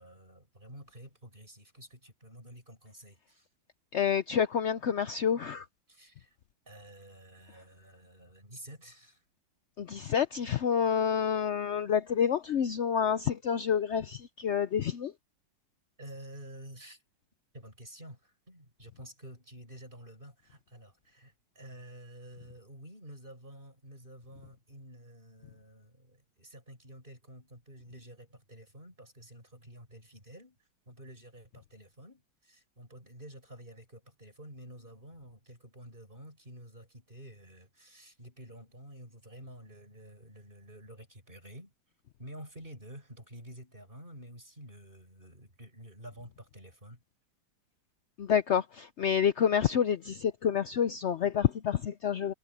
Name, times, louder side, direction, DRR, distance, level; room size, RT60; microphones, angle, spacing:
voice 1, 0.0-3.5 5.9-6.4 6.7-9.2 16.0-17.0 17.5-30.6 30.9-41.7 42.2-47.0, right 1 dB, 25° right, 7.9 m, -50 dB
voice 2, 3.9-5.6 9.8-15.1 48.2-52.3, left 8 dB, 75° left, 0.6 m, -28 dB
omnidirectional pair, 2.0 m